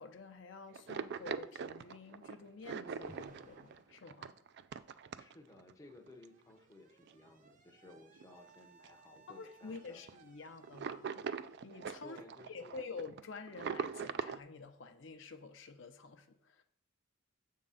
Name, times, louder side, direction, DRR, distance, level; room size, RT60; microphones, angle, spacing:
voice 1, 0.0-4.3 9.3-11.2 11.6-12.2 12.5-16.6, left 4 dB, 65° left, 0.6 m, -49 dB
sound 1, 0.7-5.7 6.1-6.2 7.0-7.1 7.5-7.6 8.0-8.5 8.8-8.9 9.2-9.3 9.7-10.1 10.6-14.4, right 6 dB, 55° right, 0.3 m, -42 dB
Alarm, 3.0-4.0 5.2-12.9, right 3 dB, 40° right, 0.7 m, -63 dB
voice 2, 5.2-10.0 12.0-12.9, left 1 dB, 15° left, 0.6 m, -57 dB
7.6 x 3.7 x 5.6 m
head